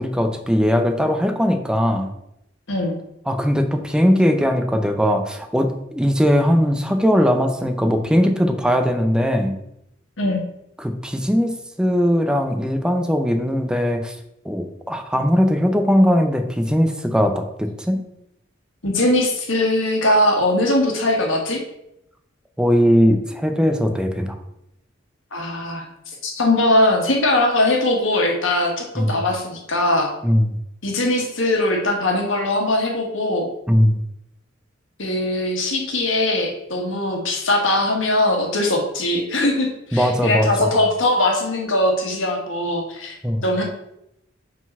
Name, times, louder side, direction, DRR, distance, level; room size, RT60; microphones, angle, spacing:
voice 1, 0.0-2.1 3.3-9.6 10.8-14.2 14.4-18.0 22.6-24.4 29.0-29.2 30.2-30.5 33.7-33.9 39.9-40.8 43.2-43.5, equal, 5° right, 6 dB, 0.6 m, -19 dB
voice 2, 18.8-21.6 25.3-25.8 26.2-30.1 30.8-33.5 35.0-43.2 43.4-43.6, left 1 dB, 80° left, 1 dB, 1.5 m, -20 dB
5.0 x 4.0 x 5.4 m, 0.81 s
head